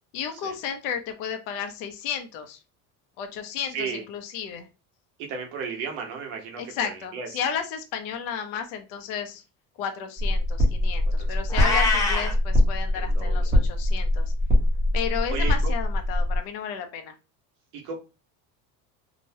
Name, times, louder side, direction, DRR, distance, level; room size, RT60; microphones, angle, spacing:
voice 1, 0.1-2.6 3.2-4.7 6.6-9.4 9.8-14.3 14.9-17.1, left 7 dB, 80° left, 6 dB, 0.8 m, -33 dB
voice 2, 3.7-4.0 5.2-7.3 11.2-11.3 11.6-11.8 12.9-13.5 15.3-15.7 17.7-17.9, right 5 dB, 75° right, 2 dB, 1.0 m, -34 dB
sound 1, 10.2-16.4, left 1 dB, 20° right, 0.9 m, -23 dB
Meow, 11.5-12.3, left 3 dB, 10° left, 0.5 m, -24 dB
2.9 x 2.1 x 2.7 m, 0.30 s
cardioid pair, 160°, 37 cm